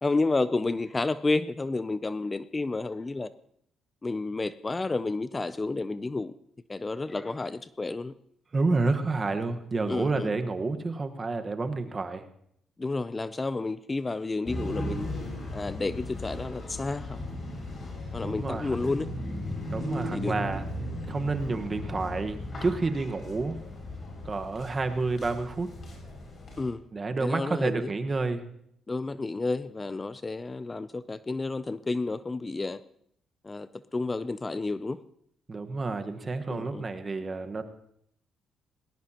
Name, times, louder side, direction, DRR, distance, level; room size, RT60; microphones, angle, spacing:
voice 1, 0.0-3.3 4.0-6.3 6.7-8.1 9.9-10.3 12.8-15.1 15.5-17.2 18.1-19.1 20.1-20.3 26.6-26.8 27.2-27.9 28.9-32.8 33.4-35.0 36.5-36.8, left 3 dB, 25° left, 15 dB, 0.5 m, -30 dB
voice 2, 8.5-12.2 18.2-18.7 19.7-20.6 21.1-23.6 24.2-25.7 26.9-28.4 35.5-37.6, right 3 dB, 30° right, 7 dB, 1.3 m, -29 dB
sound 1, 14.5-26.7, left 1 dB, 40° left, 6.0 m, -36 dB
19.0 x 18.0 x 2.9 m, 0.70 s
cardioid pair, 90°, 0 cm